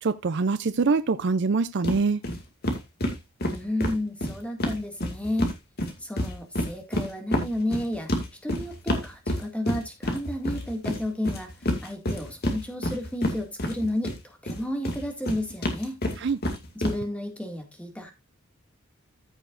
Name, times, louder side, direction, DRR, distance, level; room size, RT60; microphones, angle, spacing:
voice 1, 0.0-2.2 16.2-16.4, right 4 dB, 55° right, 0.4 m, -24 dB
sound 1, 1.8-2.0 2.2-2.4 2.6-5.5 5.8-14.2 14.5-16.9, left 1 dB, 45° left, 2.2 m, -28 dB
voice 2, 3.5-5.5 6.0-8.1 8.4-16.0 16.7-18.1, left 1 dB, 5° left, 2.0 m, -32 dB
14.5 x 7.0 x 2.5 m
head